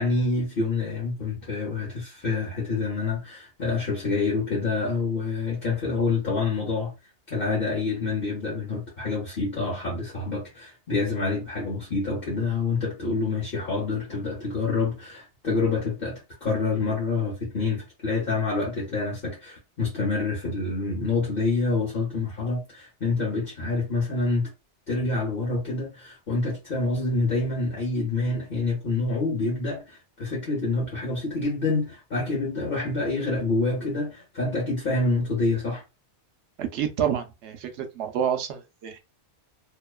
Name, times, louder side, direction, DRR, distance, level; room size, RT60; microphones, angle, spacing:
voice 1, 0.0-6.9 7.3-24.5 24.9-35.8, left 3 dB, 55° left, 1.1 m, -27 dB
voice 2, 36.6-39.0, right 9 dB, 75° right, 0.9 m, -28 dB
2.8 x 2.1 x 2.3 m
omnidirectional pair, 1.2 m